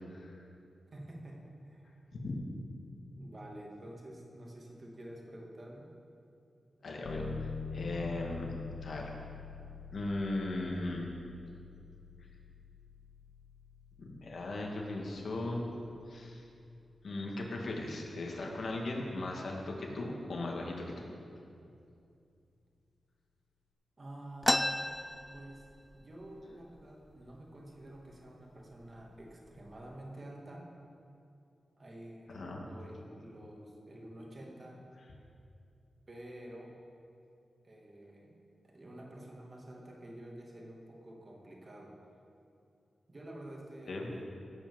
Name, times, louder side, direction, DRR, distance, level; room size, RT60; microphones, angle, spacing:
voice 1, 0.9-2.0 3.2-5.9 24.0-24.9 25.3-25.7 25.9-30.7 31.8-34.8 36.1-36.7 37.6-38.3 38.6-42.0 43.1-44.2, right 1 dB, 40° right, -1 dB, 2.5 m, -49 dB
voice 2, 6.8-8.6 8.8-9.1 9.9-11.1 14.0-15.7 16.1-16.4 17.0-21.0 32.3-32.6 43.9-44.1, left 2 dB, 65° left, -1 dB, 2.2 m, -38 dB
sound 1, 7.1-17.6, left 5 dB, 90° left, 1.7 m, -46 dB
sound 2, 24.4-26.0 26.4-26.5 26.7-27.4 28.0-28.1 28.8-29.0 29.5-29.9, left 1 dB, 15° left, 0.3 m, -33 dB
17.0 x 6.1 x 7.1 m, 2.6 s
cardioid pair, 75°, 0 cm